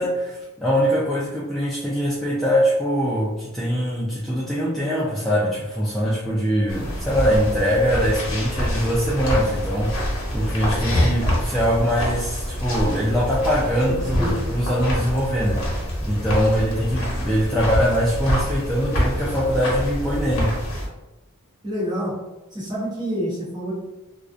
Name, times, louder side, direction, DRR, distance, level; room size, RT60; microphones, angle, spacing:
voice 1, 0.0-20.6, equal, ahead, -9 dB, 0.3 m, -22 dB
sound 1, 6.7-20.9, equal, 70° left, 0.8 m, -26 dB
voice 2, 14.2-14.5 21.6-22.2 22.5-23.7, equal, 20° right, -7 dB, 0.9 m, -27 dB
2.4 x 2.1 x 2.5 m, 1.0 s
head